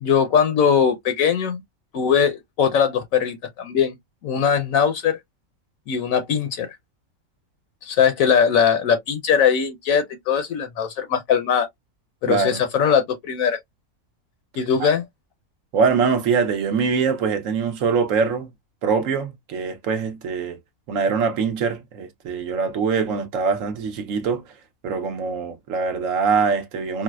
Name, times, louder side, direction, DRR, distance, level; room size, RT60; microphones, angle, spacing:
voice 1, 0.0-1.6 1.9-4.0 4.2-5.2 5.9-6.7 7.8-11.7 12.2-13.6 14.6-15.0, left 7 dB, 70° left, 1.0 m, -20 dB
voice 2, 12.3-12.6 14.8-14.9 15.7-18.5 18.8-20.6 20.9-24.4 24.8-27.0, right 5 dB, 65° right, 1.0 m, -23 dB
4.7 x 2.0 x 2.2 m
omnidirectional pair, 1.5 m